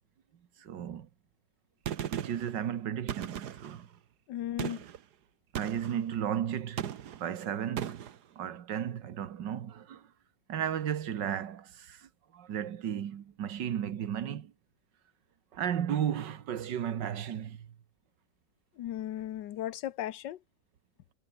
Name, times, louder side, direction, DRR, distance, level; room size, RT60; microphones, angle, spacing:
voice 1, 0.6-1.1 2.1-3.9 5.5-8.0 8.4-10.0 10.5-12.1 12.3-14.5 15.5-17.7, right 9 dB, 85° right, 1.9 m, -34 dB
Gunshot gunfire, 1.9-2.5 3.1-3.8 4.6-5.0 5.6-6.0 6.8-7.3 7.8-8.2, right 9 dB, 70° right, 1.6 m, -37 dB
voice 2, 4.3-4.8 18.8-20.4, left 12 dB, 85° left, 1.5 m, -36 dB
omnidirectional pair, 1.9 m